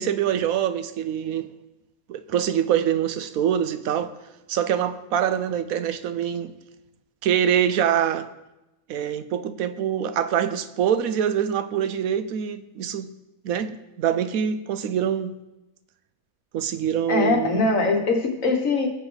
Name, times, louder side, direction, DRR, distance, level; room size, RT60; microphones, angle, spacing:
voice 1, 0.0-1.5 2.1-4.1 4.5-6.5 7.2-8.3 8.9-13.1 13.4-15.4 16.5-17.6, right 9 dB, 75° right, 1.0 m, -24 dB
voice 2, 17.1-18.9, left 3 dB, 60° left, 1.8 m, -22 dB
19.0 x 7.1 x 4.0 m
omnidirectional pair, 1.5 m